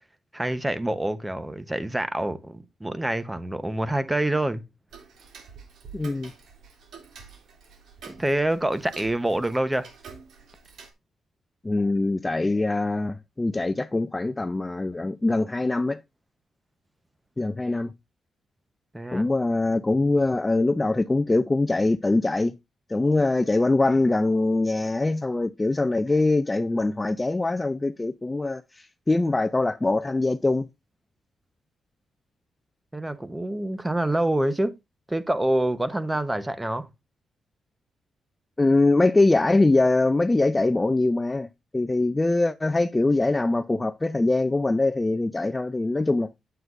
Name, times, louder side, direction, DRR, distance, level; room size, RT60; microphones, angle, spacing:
voice 1, 0.3-4.6 8.1-9.9 18.9-19.3 32.9-34.7 35.1-36.9, right 1 dB, 10° right, 1.0 m, -26 dB
Tick-tock, 4.9-10.9, right 5 dB, 75° right, 2.8 m, -47 dB
voice 2, 5.9-6.3 11.6-16.0 17.4-17.9 19.1-22.5 22.9-28.6 29.1-30.7 38.6-41.5 41.7-46.3, left 2 dB, 15° left, 0.4 m, -23 dB
9.3 x 7.9 x 2.6 m
cardioid pair, 105°, 0 cm